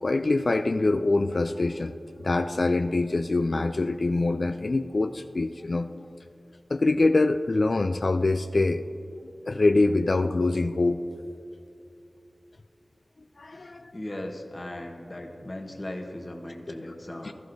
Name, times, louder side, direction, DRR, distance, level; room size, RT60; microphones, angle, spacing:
voice 1, 0.0-2.0 2.2-6.1 6.7-8.8 9.5-11.0 13.4-14.0 17.2-17.3, left 2 dB, 60° left, 7 dB, 0.3 m, -24 dB
voice 2, 13.5-17.3, left 1 dB, 35° left, 2 dB, 1.1 m, -38 dB
15.5 x 12.5 x 2.6 m, 2.9 s
wide cardioid pair, 50°, 0 cm